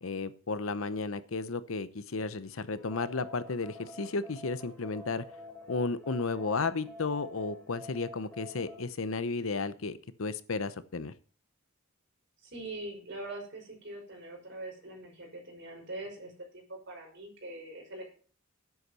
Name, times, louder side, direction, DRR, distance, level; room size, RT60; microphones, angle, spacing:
voice 1, 0.0-5.2 5.7-11.1, left 3 dB, 70° left, 14 dB, 0.8 m, -33 dB
sound 1, 2.8-8.8, left 2 dB, 10° left, 3.5 m, -48 dB
voice 2, 12.4-18.1, right 2 dB, 60° right, 1 dB, 5.5 m, -43 dB
11.0 x 8.2 x 5.6 m, 0.41 s
head